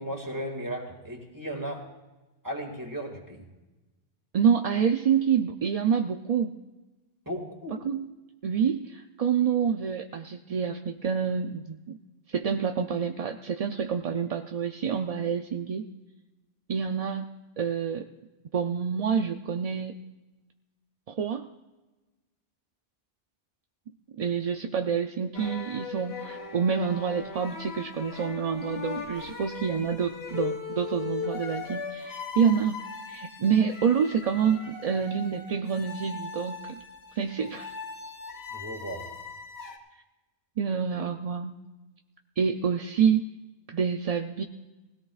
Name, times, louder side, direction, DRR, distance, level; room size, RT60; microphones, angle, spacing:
voice 1, 0.0-1.9 2.4-3.5 7.3-7.8 38.5-39.0, equal, 20° right, 2 dB, 2.1 m, -35 dB
voice 2, 4.3-6.6 7.8-8.1 8.4-12.0 12.3-15.9 16.7-17.3 17.6-18.1 18.5-20.0 21.1-21.5 24.1-32.8 33.1-36.8 37.1-37.7 39.9-40.0 40.6-41.6 42.4-43.2 43.7-44.4, right 7 dB, 50° right, 5 dB, 0.5 m, -27 dB
sound 1, 25.3-39.8, left 5 dB, 70° left, 1.7 m, -39 dB
20.0 x 17.0 x 2.4 m, 1.1 s
omnidirectional pair, 1.1 m